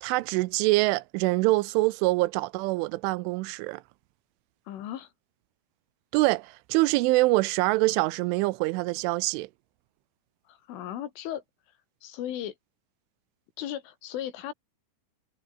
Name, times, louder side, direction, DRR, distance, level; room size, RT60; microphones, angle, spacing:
voice 1, 0.0-3.8 6.1-9.5, right 21 dB, 85° right, 3.1 m, -25 dB
voice 2, 4.7-5.1 10.5-11.4 12.0-12.6 13.6-14.5, left 11 dB, 85° left, 4.8 m, -36 dB
omnidirectional pair, 5.5 m